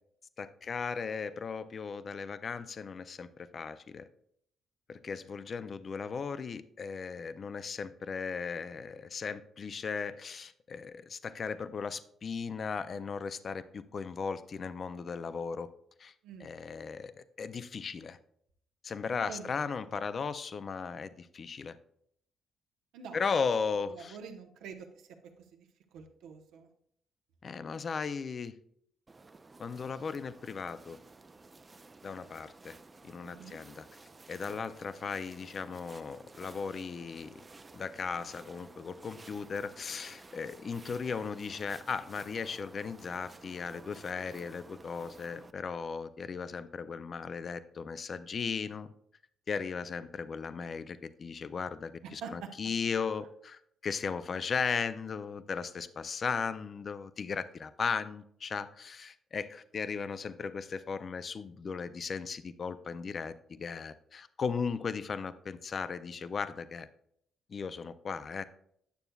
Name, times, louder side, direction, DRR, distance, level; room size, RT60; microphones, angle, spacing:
voice 1, 0.4-4.1 4.9-15.7 16.0-16.1 16.4-18.2 18.8-21.8 23.1-24.2 27.4-28.5 29.6-31.0 32.0-32.7 33.0-33.9 34.3-37.4 37.7-48.9 49.5-66.9 67.5-68.4, left 5 dB, 45° left, 13 dB, 0.4 m, -37 dB
voice 2, 23.9-25.1 25.5-25.6 25.9-26.7 33.2-33.6 52.0-52.3, right 6 dB, 85° right, 4 dB, 0.9 m, -46 dB
sound 1, 29.1-45.5, right 3 dB, 25° right, 0.4 m, -54 dB
9.1 x 6.7 x 2.3 m, 0.69 s
cardioid pair, 90°, 0 cm